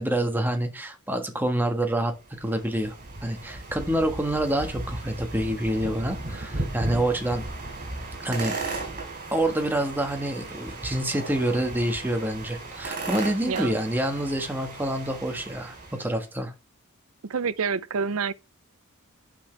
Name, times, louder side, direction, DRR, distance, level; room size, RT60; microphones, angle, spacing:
voice 1, 0.0-2.1 2.4-3.0 3.2-7.4 8.2-8.5 9.3-16.5, right 1 dB, 10° right, 1.4 m, -27 dB
sound 1, 2.2-16.2, right 2 dB, 40° right, 4.4 m, -36 dB
voice 2, 17.3-18.3, right 5 dB, 70° right, 0.6 m, -27 dB
9.8 x 6.0 x 3.3 m
head